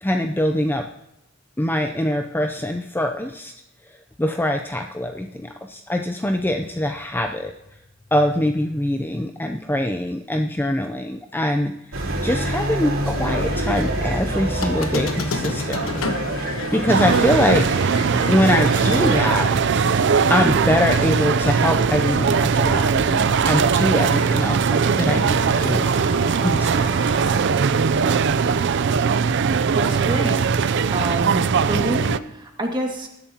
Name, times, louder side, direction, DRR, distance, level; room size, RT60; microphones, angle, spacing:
voice 1, 0.0-0.9 1.6-3.5 4.2-7.5 8.1-11.7 12.2-16.2 16.7-17.7 18.3-19.5 20.3-26.2 26.4-26.9, left 1 dB, 10° left, 4 dB, 0.5 m, -23 dB
sound 1, 11.9-27.4, right 1 dB, 75° right, 3.3 m, -29 dB
Squeak, 14.6-19.9, left 3 dB, 85° left, 1.1 m, -31 dB
sound 2, 16.9-32.2, right 5 dB, 60° right, 0.4 m, -20 dB
voice 2, 29.7-30.4 30.9-33.1, right 1 dB, 20° right, 1 dB, 1.9 m, -27 dB
20.0 x 11.0 x 2.9 m, 0.87 s
head